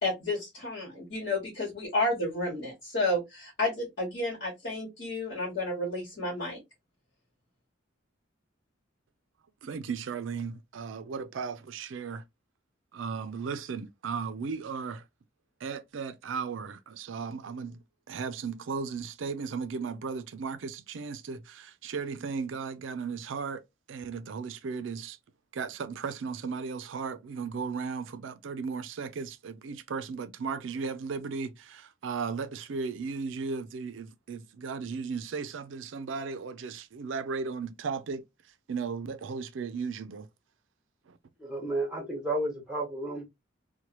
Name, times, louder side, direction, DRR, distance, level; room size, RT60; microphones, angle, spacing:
voice 1, 0.0-6.6, left 2 dB, 55° left, 1.2 m, -31 dB
voice 2, 9.6-12.2 12.9-15.0 15.6-23.6 23.9-25.2 25.5-38.2 38.7-40.3 41.1-41.2, right 5 dB, 75° right, 0.4 m, -36 dB
voice 3, 41.4-43.2, right 2 dB, 5° right, 1.1 m, -32 dB
3.0 x 2.2 x 2.9 m
head